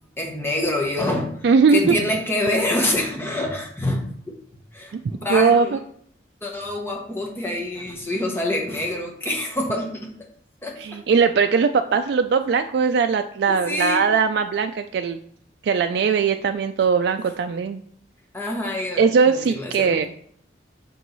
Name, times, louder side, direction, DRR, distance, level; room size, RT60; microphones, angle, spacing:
voice 1, 0.2-1.4 1.7-4.3 4.7-5.7 6.4-10.1 10.6-11.0 13.5-14.1 18.3-20.1, left 1 dB, 15° left, 0 dB, 1.1 m, -26 dB
voice 2, 1.4-1.9 5.3-5.8 10.8-15.2 15.6-17.8 19.0-20.1, right 5 dB, 70° right, 6 dB, 0.3 m, -20 dB
5.4 x 4.6 x 4.0 m, 0.63 s
head